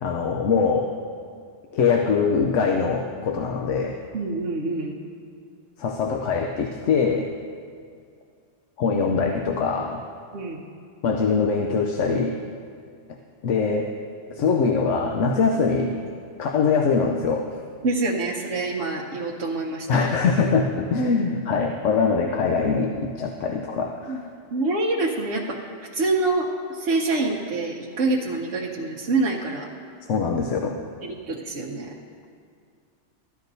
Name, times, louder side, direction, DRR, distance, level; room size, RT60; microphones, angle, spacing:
voice 1, 0.0-0.9 1.7-4.0 5.8-7.3 8.8-10.1 11.0-12.4 13.1-13.2 13.4-13.9 14.3-16.0 16.4-17.5 19.9-24.1 30.1-30.8, left 5 dB, 75° left, 2 dB, 1.0 m, -23 dB
voice 2, 4.1-4.9 10.3-10.6 17.8-20.1 24.1-24.2 24.5-29.7 31.0-31.9, right 3 dB, 65° right, -4 dB, 1.1 m, -26 dB
15.0 x 11.5 x 2.7 m, 2.3 s
omnidirectional pair, 1.3 m